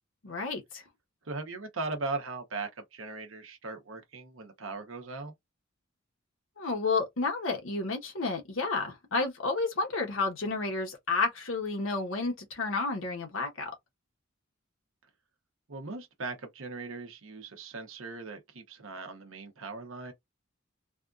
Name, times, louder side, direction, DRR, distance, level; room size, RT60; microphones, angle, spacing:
voice 1, 0.2-0.8 6.6-13.7, left 3 dB, 85° left, 1.2 m, -31 dB
voice 2, 1.2-5.3 15.7-20.1, right 3 dB, 85° right, 0.9 m, -39 dB
3.4 x 2.4 x 2.5 m
head